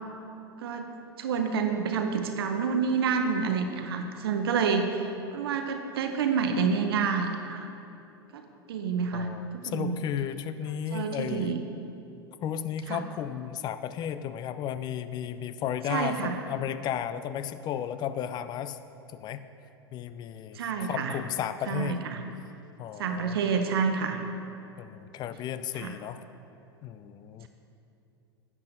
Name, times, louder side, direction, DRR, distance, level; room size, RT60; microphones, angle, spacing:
voice 1, 1.2-5.0 5.3-7.7 8.3-8.4 8.7-9.3 9.7-10.0 10.9-11.6 12.9-13.0 15.9-16.3 20.5-21.1 21.7-22.2 23.0-24.2 25.8-25.9, right 6 dB, 70° right, 6 dB, 0.7 m, -28 dB
voice 2, 9.1-11.6 12.4-18.8 19.1-19.4 19.9-22.0 22.8-23.4 24.8-26.2 26.8-27.5, left 9 dB, 35° left, 12 dB, 0.4 m, -34 dB
10.5 x 8.5 x 2.6 m, 2.8 s
hypercardioid pair, 90°, 13 cm